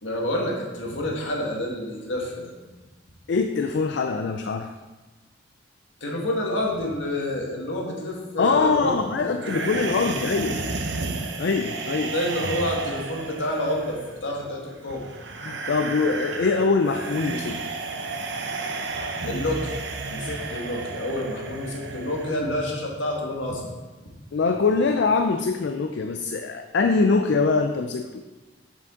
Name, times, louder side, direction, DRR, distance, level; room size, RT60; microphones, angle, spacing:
voice 1, 0.0-2.5 6.0-8.9 9.4-9.5 9.9-10.7 12.1-15.1 19.2-19.8 20.1-23.7, left 1 dB, 80° left, -1 dB, 1.7 m, -28 dB
voice 2, 3.3-4.7 8.4-10.6 11.4-12.1 15.4-17.6 24.3-28.2, left 4 dB, 65° left, 6 dB, 0.4 m, -23 dB
sound 1, 9.4-22.4, right 3 dB, 65° right, 0.8 m, -32 dB
7.7 x 7.2 x 3.8 m, 1.2 s
head